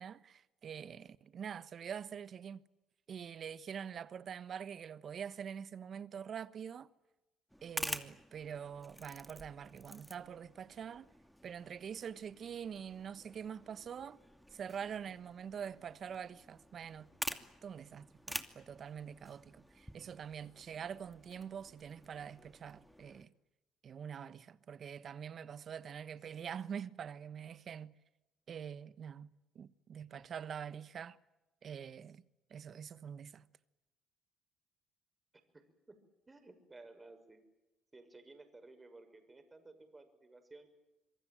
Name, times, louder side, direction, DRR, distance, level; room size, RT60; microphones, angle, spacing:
voice 1, 0.0-2.6 3.1-6.9 7.6-11.1 11.4-14.2 14.5-23.3 23.8-27.9 28.5-31.2 31.6-32.2 32.5-33.5, right 7 dB, 55° right, 1.2 m, -45 dB
sound 1, 7.5-23.3, equal, ahead, 2.6 m, -49 dB
voice 2, 35.5-36.0 36.3-37.4 37.9-40.7, right 2 dB, 25° right, 6.8 m, -56 dB
26.5 x 23.0 x 9.1 m
hypercardioid pair, 55°, 0 cm